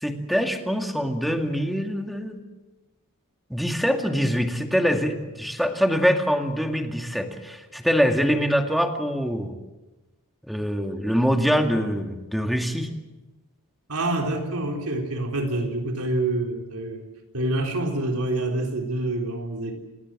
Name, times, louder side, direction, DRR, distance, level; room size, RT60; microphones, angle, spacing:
voice 1, 0.0-2.4 3.5-9.5 10.5-12.9, equal, ahead, 4 dB, 2.1 m, -24 dB
voice 2, 13.9-17.0 17.3-19.7, right 2 dB, 80° right, 2 dB, 4.0 m, -27 dB
28.0 x 19.5 x 7.6 m, 1.1 s
head